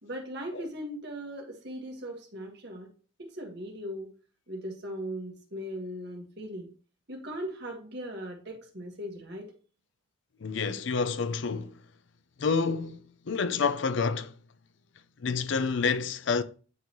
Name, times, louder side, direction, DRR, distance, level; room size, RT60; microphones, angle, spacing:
voice 1, 0.0-2.9 3.2-4.1 4.5-6.7 7.1-9.5, equal, 55° right, 1.7 m, -39 dB
voice 2, 10.4-11.8 12.4-14.3 15.2-16.4, left 5 dB, 65° left, 0.5 m, -28 dB
9.2 x 3.8 x 3.0 m
head